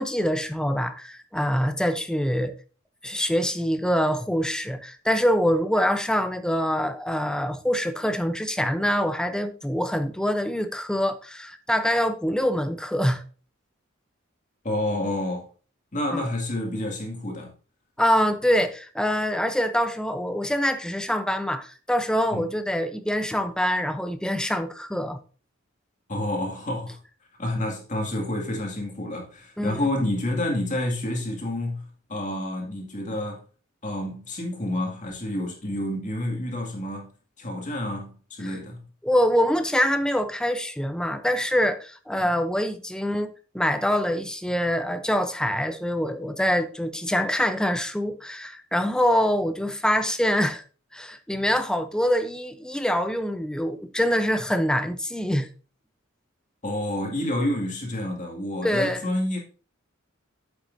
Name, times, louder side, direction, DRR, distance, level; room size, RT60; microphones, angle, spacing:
voice 1, 0.0-2.5 3.0-13.2 16.1-16.3 18.0-25.2 29.6-29.8 39.0-50.6 50.9-55.5 58.6-59.0, equal, 5° left, 0.6 m, -25 dB
voice 2, 14.6-15.4 15.9-17.5 22.3-22.5 26.1-27.0 27.4-31.8 32.1-33.4 33.8-37.1 37.4-38.8 42.2-42.4 56.6-59.4, left 1 dB, 40° left, 2.1 m, -29 dB
9.0 x 7.4 x 2.6 m
head